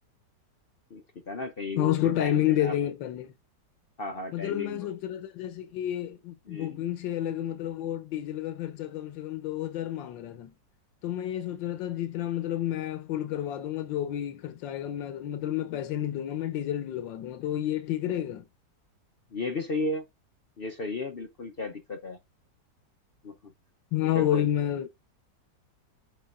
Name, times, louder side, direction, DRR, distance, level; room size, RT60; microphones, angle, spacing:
voice 1, 0.9-2.8 4.0-4.9 6.5-6.8 19.3-20.0 20.6-22.2 23.2-23.5 24.0-24.5, left 2 dB, 55° left, 0.6 m, -35 dB
voice 2, 1.7-3.3 4.3-10.5 11.0-18.4 23.9-24.9, left 12 dB, 90° left, 1.5 m, -30 dB
7.6 x 5.3 x 2.5 m
omnidirectional pair, 2.0 m